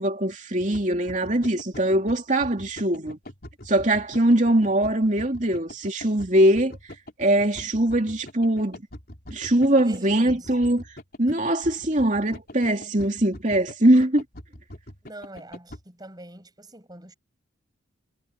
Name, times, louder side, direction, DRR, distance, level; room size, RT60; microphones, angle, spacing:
voice 1, 0.0-3.2 3.7-6.8 7.2-8.8 9.3-10.8 11.2-14.2, right 1 dB, 35° right, 3.1 m, -22 dB
sound 1, 0.6-15.8, left 1 dB, 45° left, 4.0 m, -42 dB
voice 2, 9.8-10.5 11.3-11.4 15.0-17.1, right 1 dB, 20° right, 7.6 m, -44 dB
head